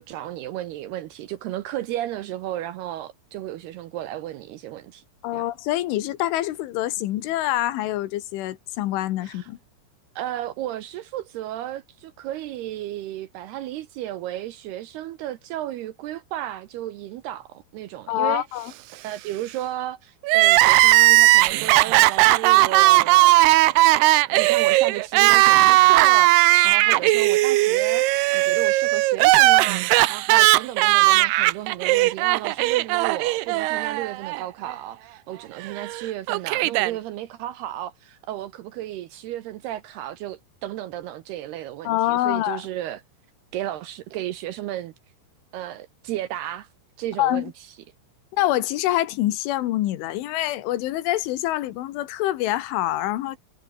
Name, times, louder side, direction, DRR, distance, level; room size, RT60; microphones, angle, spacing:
voice 1, 0.0-5.0 5.3-5.4 9.2-9.5 10.2-18.4 18.9-23.8 24.1-28.1 28.3-43.0 43.5-44.9 45.5-46.7 47.0-47.5, right 13 dB, 75° right, 2.6 m, -33 dB
voice 2, 5.2-9.6 18.1-18.7 41.9-42.6 47.2-47.5 48.3-53.4, left 14 dB, 80° left, 3.9 m, -25 dB
Crying sobbing, 20.2-34.4 34.7-34.8 35.8-36.9, right 19 dB, 90° right, 2.3 m, -17 dB
omnidirectional pair, 5.5 m